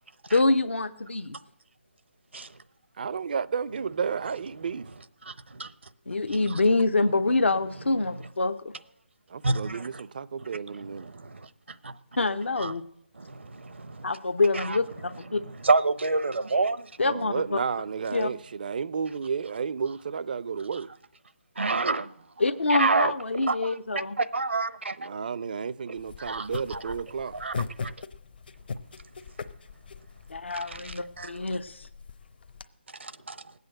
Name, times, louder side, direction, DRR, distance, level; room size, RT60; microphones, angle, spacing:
voice 1, 0.3-1.4 6.1-8.7 12.2-12.8 14.0-15.4 17.0-17.6 18.1-18.3 22.4-24.1 30.3-31.9, left 3 dB, 80° left, 0.9 m, -26 dB
voice 2, 3.0-4.9 9.3-11.1 17.0-20.9 25.0-27.3, right 6 dB, 50° right, 0.5 m, -32 dB
voice 3, 5.3-5.7 6.3-6.6 9.4-10.0 10.7-12.0 12.6-12.7 13.1-14.1 14.5-14.8 15.3-16.9 21.6-22.1 22.7-25.1 26.2-26.9 27.3-27.9 30.5-31.3 33.0-33.5, right 3 dB, 80° right, 0.9 m, -29 dB
sound 1, 26.0-32.6, left 5 dB, 55° left, 0.8 m, -40 dB
19.0 x 8.2 x 7.8 m
figure-of-eight pair, 155°, 6 cm